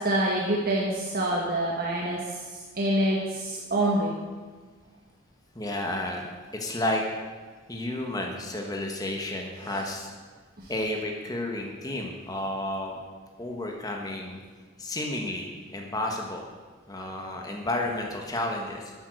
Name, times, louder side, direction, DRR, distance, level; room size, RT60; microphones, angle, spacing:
voice 1, 0.0-2.2 2.7-4.1, right 1 dB, 45° right, -3 dB, 1.6 m, -26 dB
voice 2, 5.5-6.2 6.5-7.0 7.7-10.1 10.7-13.0 13.4-14.4 14.8-16.5 16.9-18.9, left 1 dB, 20° left, 1 dB, 1.4 m, -31 dB
12.5 x 8.9 x 6.4 m, 1.5 s
head